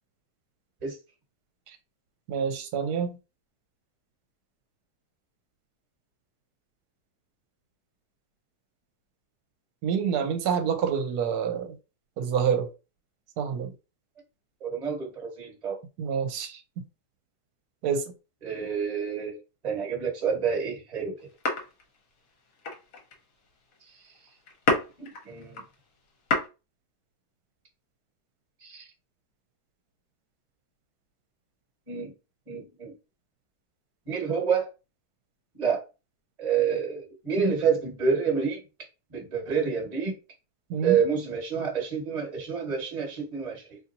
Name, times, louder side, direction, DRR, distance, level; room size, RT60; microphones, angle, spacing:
voice 1, 2.3-3.2 9.8-11.8 12.2-12.7 13.4-13.7 16.0-16.6 17.8-18.0 40.7-41.0, right 7 dB, 75° right, 1.2 m, -27 dB
voice 2, 14.6-15.8 18.4-19.4 19.6-21.1 24.1-24.2 24.7-25.6 28.6-28.9 31.9-32.1 32.5-32.9 34.1-34.7 35.5-35.8 36.4-38.6 39.1-40.2 40.8-43.8, right 6 dB, 25° right, 1.3 m, -28 dB
sound 1, 21.2-25.8 26.1-26.5, left 2 dB, 60° left, 1.3 m, -30 dB
4.1 x 2.9 x 2.6 m
omnidirectional pair, 1.8 m